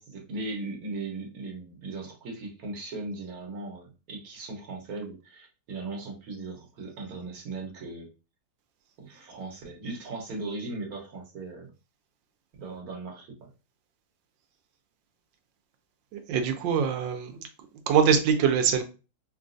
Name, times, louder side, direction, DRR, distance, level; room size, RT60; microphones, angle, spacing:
voice 1, 0.0-8.1 9.0-11.7 12.5-13.5, right 3 dB, 60° right, 1.3 m, -38 dB
voice 2, 16.1-17.4 17.9-18.8, right 7 dB, 90° right, 1.4 m, -23 dB
3.8 x 2.3 x 2.5 m
omnidirectional pair, 2.0 m